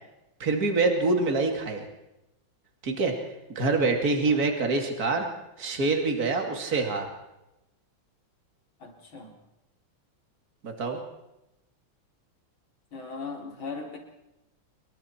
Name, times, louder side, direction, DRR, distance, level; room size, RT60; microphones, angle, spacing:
voice 1, 0.4-1.9 2.8-3.2 3.5-5.3 5.6-7.1 10.6-11.0, right 3 dB, 50° right, 3 dB, 2.9 m, -25 dB
voice 2, 8.8-9.4 12.9-14.0, left 4 dB, 85° left, 1 dB, 4.7 m, -39 dB
27.0 x 22.0 x 4.5 m, 0.92 s
omnidirectional pair, 2.1 m